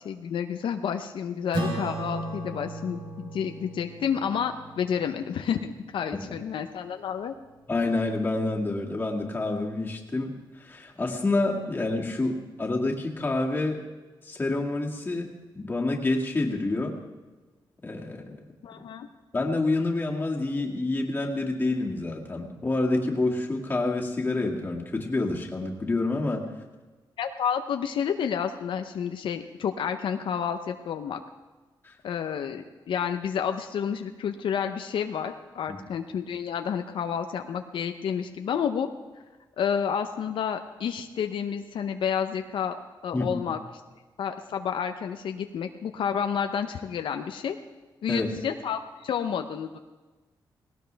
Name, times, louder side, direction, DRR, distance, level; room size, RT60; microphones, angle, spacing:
voice 1, 0.0-7.3 18.6-19.1 27.2-31.2 32.0-38.9 39.6-42.7 43.0-43.6 44.2-47.6 48.0-49.8, left 7 dB, 85° left, 6 dB, 0.7 m, -30 dB
Acoustic guitar / Strum, 1.5-6.3, right 2 dB, 70° right, 3.1 m, -36 dB
voice 2, 7.7-10.3 10.6-13.8 14.2-15.3 15.5-17.0 17.8-18.4 19.3-26.4 31.8-31.9 35.7-35.8 43.1-43.4 48.1-48.3, left 2 dB, 25° left, -1 dB, 2.2 m, -28 dB
19.0 x 17.5 x 3.4 m, 1.3 s
wide cardioid pair, 120°, 8 cm